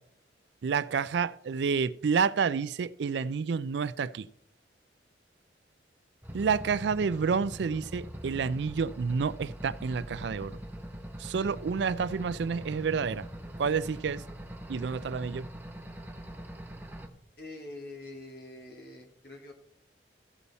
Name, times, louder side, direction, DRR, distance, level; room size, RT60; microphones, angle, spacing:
voice 1, 0.6-4.3 6.3-10.6 11.2-13.3 13.6-14.2 14.7-15.5, right 5 dB, 75° right, 0.4 m, -29 dB
sound 1, 6.2-17.1, right 1 dB, 10° right, 0.8 m, -42 dB
voice 2, 17.4-19.5, left 2 dB, 60° left, 2.0 m, -45 dB
14.5 x 7.0 x 4.1 m
head